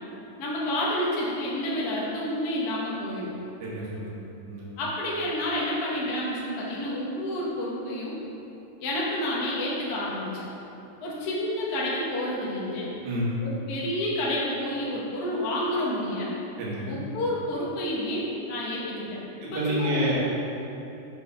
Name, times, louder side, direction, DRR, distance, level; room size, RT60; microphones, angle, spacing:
voice 1, 0.4-3.3 4.8-8.2 8.8-10.5 11.0-12.9 13.4-16.3 16.8-20.1, left 1 dB, 60° left, -6 dB, 0.9 m, -29 dB
voice 2, 3.6-4.1 4.4-4.7 13.0-13.3 16.6-17.0 19.4-20.1, right 1 dB, 75° right, -6 dB, 2.9 m, -29 dB
6.5 x 4.2 x 5.6 m, 2.9 s
omnidirectional pair, 3.5 m